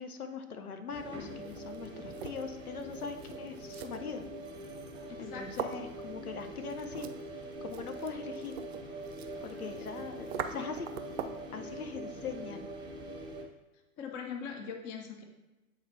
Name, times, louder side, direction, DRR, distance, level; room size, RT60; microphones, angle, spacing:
voice 1, 0.0-4.2 5.2-7.1 7.4-8.5 9.4-11.2 11.5-12.7, left 5 dB, 80° left, 7 dB, 0.8 m, -41 dB
sound 1, 0.9-13.4, right 1 dB, 10° right, 0.8 m, -43 dB
sound 2, 1.3-11.5, right 8 dB, 45° right, 0.5 m, -44 dB
voice 2, 5.1-5.7 9.8-9.9 14.0-15.2, left 6 dB, 20° left, 4 dB, 0.4 m, -41 dB
8.2 x 4.0 x 3.1 m, 1.1 s
figure-of-eight pair, 110°, 44 cm